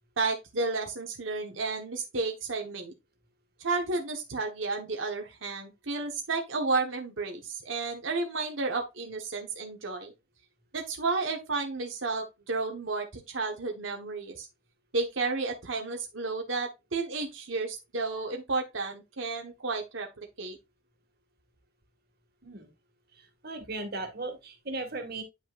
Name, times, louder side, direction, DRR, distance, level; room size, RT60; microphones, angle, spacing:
voice 1, 0.2-2.9 3.6-10.1 10.7-14.5 14.9-20.6, right 3 dB, 90° right, 1.3 m, -32 dB
voice 2, 23.1-25.2, right 2 dB, 55° right, 2.0 m, -37 dB
9.6 x 5.5 x 2.5 m
head